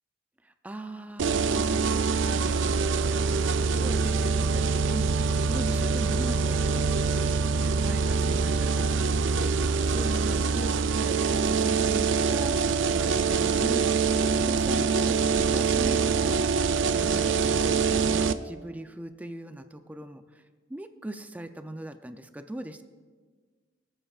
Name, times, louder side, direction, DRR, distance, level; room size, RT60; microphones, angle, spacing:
voice 1, 0.4-12.5 12.9-13.9 14.5-16.4 16.8-20.4 20.7-22.8, right 1 dB, 10° right, 8 dB, 0.4 m, -40 dB
sound 1, 1.2-18.3, right 5 dB, 75° right, 0.4 m, -25 dB
22.0 x 8.8 x 2.4 m, 1.5 s
head